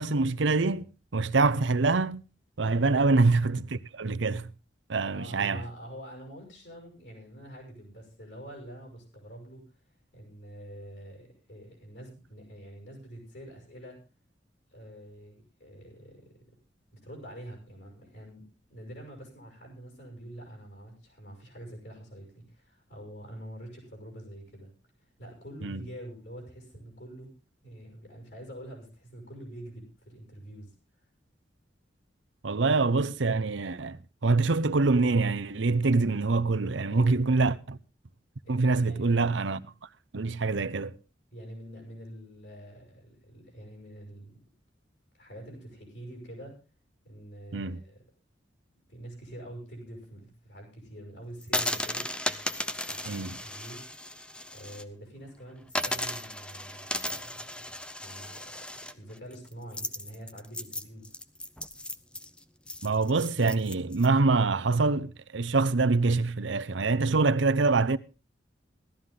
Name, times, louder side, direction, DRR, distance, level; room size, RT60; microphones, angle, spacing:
voice 1, 0.0-2.2 2.6-4.5 4.9-5.6 25.6-25.9 32.4-37.8 38.5-39.6 40.1-41.0 47.5-47.8 53.1-53.4 62.8-68.0, right 3 dB, 85° right, 0.8 m, -25 dB
voice 2, 5.1-9.6 10.1-14.0 14.7-16.3 16.9-24.7 25.2-27.3 27.6-30.7 36.9-37.2 38.4-39.1 41.3-44.4 45.1-46.6 47.0-48.0 48.9-52.1 52.9-53.8 54.5-57.6 58.0-61.1, right 1 dB, 65° left, 6.5 m, -46 dB
sound 1, 51.4-54.8 55.2-55.3 55.7-64.1, left 1 dB, 5° left, 0.6 m, -35 dB
17.5 x 13.0 x 3.8 m
head